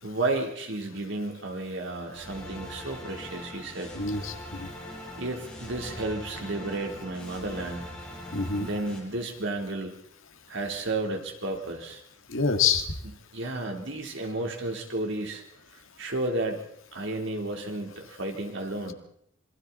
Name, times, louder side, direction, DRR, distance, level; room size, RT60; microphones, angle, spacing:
voice 1, 0.0-3.9 5.2-7.9 8.6-9.9 10.5-12.0 13.3-15.4 16.0-16.6 16.9-18.9, right 2 dB, 65° right, 2 dB, 3.8 m, -32 dB
sound 1, 2.1-9.0, left 1 dB, 5° left, 6.4 m, -41 dB
voice 2, 3.9-4.7 8.3-8.7 12.3-12.9, left 5 dB, 80° left, 7 dB, 2.0 m, -26 dB
27.0 x 23.0 x 4.3 m, 0.69 s
head